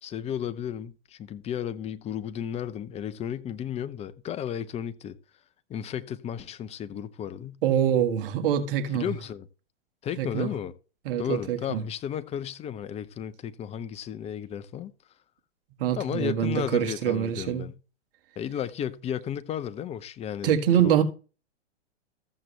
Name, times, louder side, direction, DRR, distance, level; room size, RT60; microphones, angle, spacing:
voice 1, 0.0-5.2 5.7-7.6 8.9-9.5 10.0-10.7 11.2-14.9 15.9-17.7 18.4-20.5 20.8-21.0, left 9 dB, 20° left, 0.7 m, -33 dB
voice 2, 7.6-9.1 10.2-10.5 11.1-11.8 15.8-17.7 20.4-21.0, right 9 dB, 55° right, 1.9 m, -25 dB
14.0 x 7.5 x 3.3 m
hypercardioid pair, 115°, 33 cm